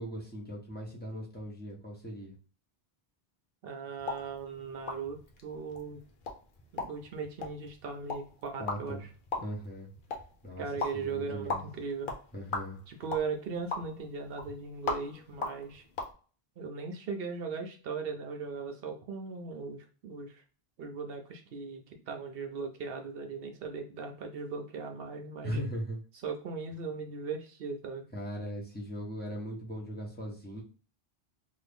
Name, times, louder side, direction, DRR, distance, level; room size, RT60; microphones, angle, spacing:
voice 1, 0.0-2.3 8.6-9.0 9.4-9.9 10.4-10.7 10.9-11.6 12.3-12.8 25.4-26.0 28.1-30.6, equal, 10° left, -2 dB, 0.8 m, -39 dB
voice 2, 3.6-6.0 6.7-9.1 10.6-12.1 12.9-15.9 16.6-20.4 20.8-25.6 26.2-28.1, right 5 dB, 70° right, 4 dB, 0.8 m, -38 dB
sound 1, 4.0-16.1, left 3 dB, 60° left, 0.8 m, -40 dB
2.7 x 2.5 x 3.4 m, 0.37 s
omnidirectional pair, 1.0 m